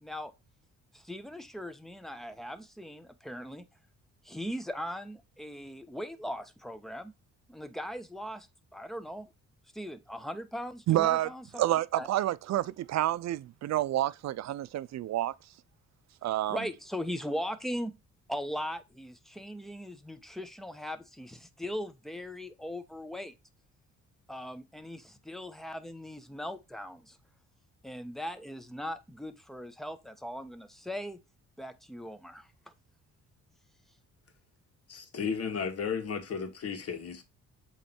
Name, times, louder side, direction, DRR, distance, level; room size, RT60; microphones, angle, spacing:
voice 1, 0.0-0.3 0.9-3.6 4.2-7.1 7.5-8.5 8.7-9.3 9.7-11.6 11.9-12.1 16.5-17.9 18.3-23.3 24.3-27.2 27.8-31.2 31.6-32.7, equal, ahead, 1.0 m, -39 dB
voice 2, 10.9-11.3 11.6-15.3 16.2-16.6, right 14 dB, 65° right, 0.5 m, -29 dB
voice 3, 34.9-37.2, left 6 dB, 55° left, 1.8 m, -34 dB
7.7 x 3.3 x 4.4 m
cardioid pair, 90°, 30 cm